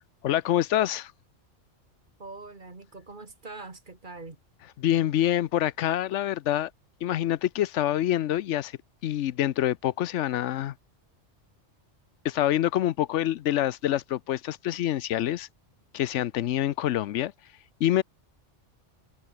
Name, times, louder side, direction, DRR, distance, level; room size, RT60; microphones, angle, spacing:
voice 1, 0.2-1.1 4.8-6.7 7.0-10.7 12.2-15.5 15.9-17.3 17.8-18.0, left 12 dB, 90° left, 1.0 m, -26 dB
voice 2, 2.2-4.4, right 3 dB, 45° right, 2.3 m, -43 dB
omnidirectional pair, 1.2 m